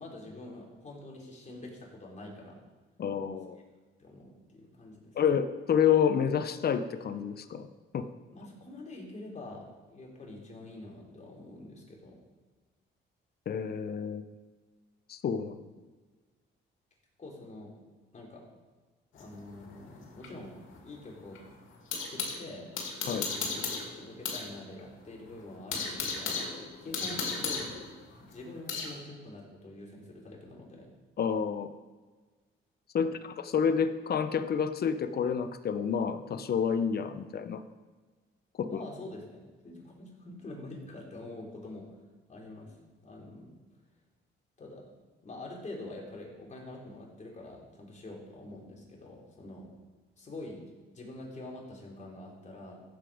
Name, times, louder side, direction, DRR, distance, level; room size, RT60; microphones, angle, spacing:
voice 1, 0.0-2.6 4.0-5.1 8.3-12.2 17.2-17.7 18.1-18.4 19.1-21.4 22.1-22.7 23.3-23.6 24.0-27.7 28.2-30.9 38.6-41.9 42.3-42.7 43.0-43.5 44.6-44.9 45.2-49.7 50.2-50.6 50.9-52.8, left 2 dB, 35° left, -2 dB, 4.1 m, -45 dB
voice 2, 3.0-3.6 5.1-7.7 7.9-8.1 13.5-14.2 15.1-15.6 23.1-23.3 31.2-31.7 32.9-37.6 38.6-38.8, left 7 dB, 50° left, 10 dB, 0.9 m, -29 dB
sound 1, 19.2-22.4 22.8-24.5 24.8-24.9 25.3-29.0, left 5 dB, 85° left, 2.5 m, -35 dB
15.0 x 7.9 x 5.0 m, 1.3 s
cardioid pair, 90°, 20 cm